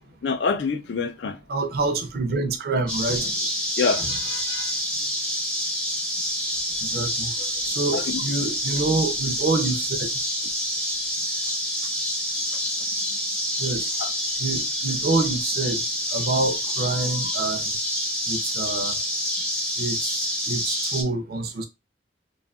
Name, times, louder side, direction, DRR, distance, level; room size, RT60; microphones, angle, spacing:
voice 1, 0.2-1.4 3.8-4.7 7.9-8.2 12.8-12.9 14.0-14.1, left 5 dB, 75° left, 0.4 m, -27 dB
voice 2, 1.5-3.3 4.0-4.1 6.9-10.1 13.6-13.9 14.4-15.8 16.1-17.7 18.3-19.0 19.8-21.6, right 3 dB, 55° right, 0.5 m, -27 dB
sound 1, 2.9-21.0, equal, 5° left, 0.5 m, -27 dB
2.6 x 2.4 x 2.3 m
head